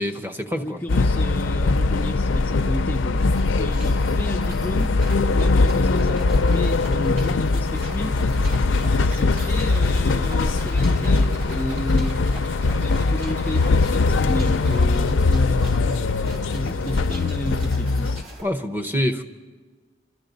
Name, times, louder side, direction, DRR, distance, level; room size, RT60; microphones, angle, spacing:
voice 1, 0.0-0.8 18.4-19.2, left 1 dB, 10° right, 6 dB, 0.7 m, -26 dB
voice 2, 0.6-5.0 5.3-8.2 9.0-12.2 12.8-15.6 16.5-18.3, equal, 10° left, 2 dB, 0.4 m, -33 dB
sound 1, 0.9-18.2, left 3 dB, 70° left, 0.5 m, -21 dB
sound 2, 3.2-18.4, right 2 dB, 85° right, 3.8 m, -44 dB
Zipper (clothing), 7.7-14.8, equal, 60° right, 6.8 m, -43 dB
25.5 x 13.5 x 3.9 m, 1.4 s
head